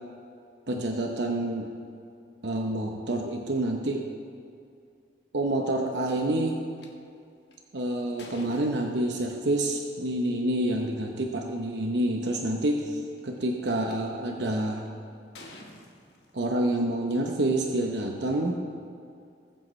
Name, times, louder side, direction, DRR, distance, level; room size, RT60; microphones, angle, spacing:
voice 1, 0.7-1.7 2.4-4.1 5.3-6.6 7.7-14.9 16.3-18.6, right 1 dB, 70° right, 2 dB, 0.9 m, -28 dB
sound 1, 6.8-6.9 7.5-9.4 10.6-10.8 11.5-11.6 11.8-12.2 12.9-13.9 14.6-14.9 15.3-16.8, left 2 dB, 65° left, 1.4 m, -49 dB
20.5 x 7.9 x 3.2 m, 2.5 s
head